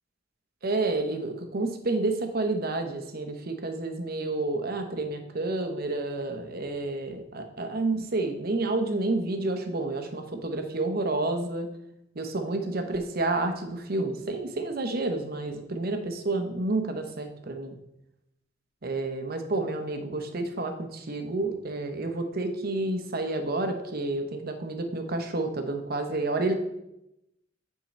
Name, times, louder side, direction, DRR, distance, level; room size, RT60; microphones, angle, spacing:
voice 1, 0.6-11.7 12.2-17.8 18.8-26.5, right 2 dB, 50° right, 6 dB, 0.8 m, -30 dB
9.1 x 3.8 x 4.2 m, 0.86 s
head